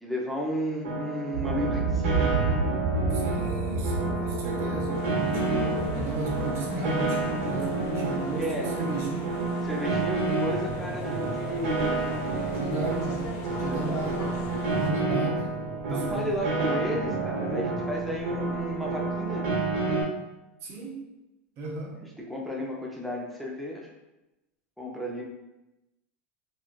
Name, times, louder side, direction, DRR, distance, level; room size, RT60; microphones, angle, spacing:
voice 1, 0.0-2.3 8.4-8.8 9.6-12.8 13.6-14.1 15.9-19.5 22.0-23.9 24.8-25.2, equal, ahead, -3 dB, 0.5 m, -33 dB
Piano, 0.8-20.0, right 3 dB, 80° right, 0.8 m, -30 dB
sound 1, 1.3-19.9, right 2 dB, 85° left, 0.9 m, -34 dB
voice 2, 3.1-9.3 12.5-14.3 14.7-15.6 15.9-16.4 20.6-21.1 21.6-22.1, right 3 dB, 40° right, 0 dB, 0.6 m, -35 dB
sound 2, 4.9-14.9, left 2 dB, 50° left, 0.5 m, -42 dB
3.0 x 2.3 x 2.4 m, 0.97 s
supercardioid pair, 125°, 7 cm